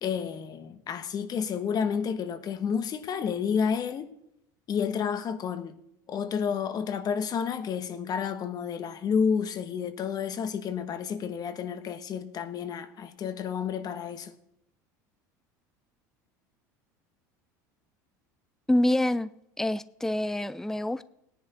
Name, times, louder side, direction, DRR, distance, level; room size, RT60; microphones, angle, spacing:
voice 1, 0.0-4.1 4.7-5.8 6.1-14.3, left 7 dB, 40° left, 1.4 m, -30 dB
voice 2, 18.7-19.3 19.6-21.0, left 1 dB, 5° left, 0.5 m, -26 dB
17.5 x 10.5 x 4.3 m
hypercardioid pair, 85°, 10 cm